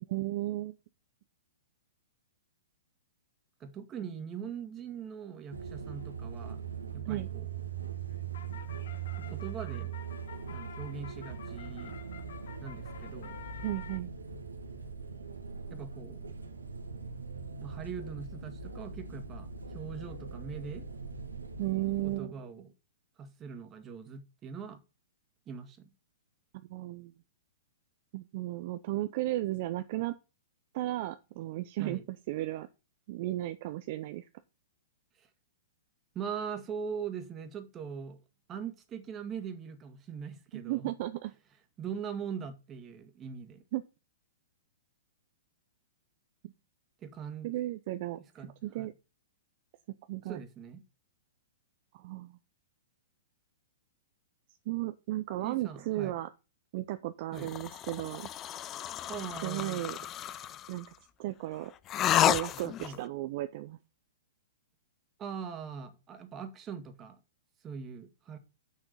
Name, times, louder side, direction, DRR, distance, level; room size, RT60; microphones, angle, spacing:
voice 1, 0.1-0.7 7.1-7.3 13.6-14.1 21.6-22.3 26.5-27.1 28.1-30.1 30.7-32.0 32.3-32.7 33.1-34.3 40.5-41.3 43.7-43.8 46.4-46.5 47.4-48.2 48.6-48.9 50.1-50.4 51.9-52.4 54.7-56.3 56.7-58.3 59.4-60.0 60.7-60.9 61.2-61.7 62.3-63.8, right 16 dB, 50° right, 0.6 m, -34 dB
voice 2, 3.6-6.6 6.9-7.5 9.2-9.9 10.5-12.0 12.6-13.4 15.7-16.3 17.6-20.9 22.0-22.7 23.2-24.8 25.5-25.9 31.8-32.1 35.2-35.3 36.1-38.2 38.5-40.9 41.8-43.6 47.0-47.5 48.4-48.9 50.3-50.8 55.4-56.2 57.3-57.5 59.1-60.0 62.8-63.0 65.2-67.2 67.6-68.4, right 7 dB, 25° right, 1.9 m, -41 dB
sound 1, 5.5-22.2, right 6 dB, 90° right, 1.6 m, -41 dB
sound 2, 7.8-14.0, left 9 dB, 65° left, 1.0 m, -50 dB
sound 3, 57.4-60.8 61.9-63.0, left 11 dB, 30° left, 0.5 m, -31 dB
6.4 x 5.9 x 7.0 m
hypercardioid pair, 115°, 0 cm